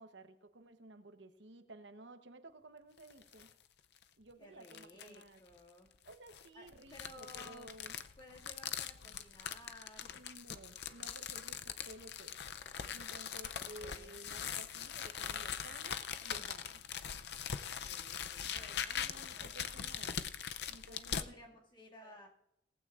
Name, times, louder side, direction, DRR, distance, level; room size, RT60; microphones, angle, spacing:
voice 1, 0.0-3.5 4.2-5.4 6.0-7.9 10.1-12.4 12.9-16.8 18.9-20.2 20.7-21.2 22.0-22.2, right 2 dB, 75° right, 8 dB, 1.0 m, -55 dB
sound 1, 3.0-3.5 4.0-4.1 4.6-5.2 6.1-21.3, left 8 dB, 60° left, 0.5 m, -42 dB
voice 2, 4.4-5.9 6.5-7.7 8.2-10.2 13.6-14.2 17.8-19.0 19.4-19.8 20.9-22.3, left 1 dB, 25° left, -2 dB, 2.2 m, -57 dB
19.0 x 15.0 x 2.5 m, 0.82 s
head